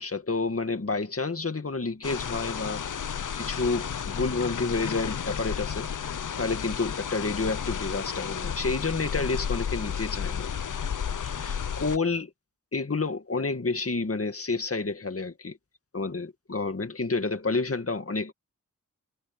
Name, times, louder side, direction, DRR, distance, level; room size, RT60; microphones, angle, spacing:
voice 1, 0.0-10.5 11.2-12.3 12.7-15.6 15.9-18.3, left 3 dB, 45° left, 2.0 m, -30 dB
sound 1, 2.0-12.0, left 7 dB, 75° left, 0.7 m, -32 dB
wide cardioid pair, 70°, 31 cm